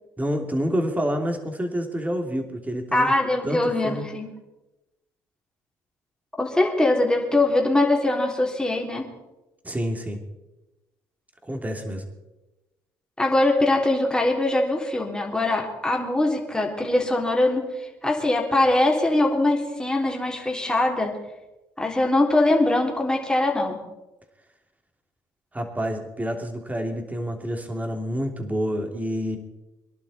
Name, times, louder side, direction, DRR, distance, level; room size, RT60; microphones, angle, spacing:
voice 1, 0.2-3.1 3.4-4.1 9.6-10.2 11.4-12.0 25.5-29.4, equal, 15° right, 4 dB, 3.0 m, -28 dB
voice 2, 2.9-4.3 6.4-9.1 13.2-21.2 21.8-23.8, left 2 dB, 10° left, 0 dB, 3.5 m, -22 dB
23.0 x 11.5 x 4.4 m, 1.0 s
hypercardioid pair, 60°, 10 cm